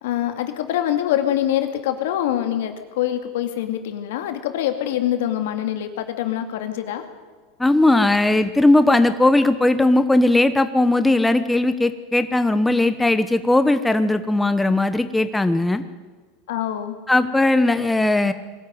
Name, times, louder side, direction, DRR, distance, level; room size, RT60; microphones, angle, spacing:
voice 1, 0.0-7.0 16.5-17.0, left 11 dB, 75° left, 7 dB, 2.3 m, -24 dB
voice 2, 7.6-15.8 17.1-18.3, left 2 dB, 5° left, 11 dB, 1.0 m, -18 dB
21.0 x 13.5 x 9.4 m, 1.4 s
hypercardioid pair, 110°, 0 cm